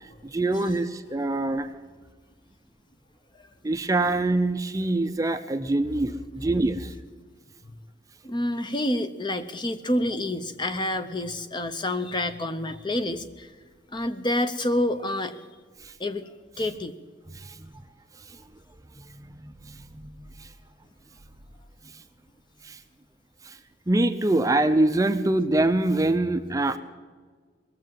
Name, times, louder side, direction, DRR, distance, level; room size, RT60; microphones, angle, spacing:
voice 1, 0.3-1.7 3.6-6.9 19.3-20.1 22.7-22.8 23.9-26.8, right 2 dB, 20° right, 9 dB, 0.6 m, -24 dB
voice 2, 8.2-13.5 13.9-15.4 16.0-16.9, left 1 dB, 25° left, 9 dB, 0.7 m, -28 dB
20.5 x 7.5 x 7.6 m, 1.5 s
head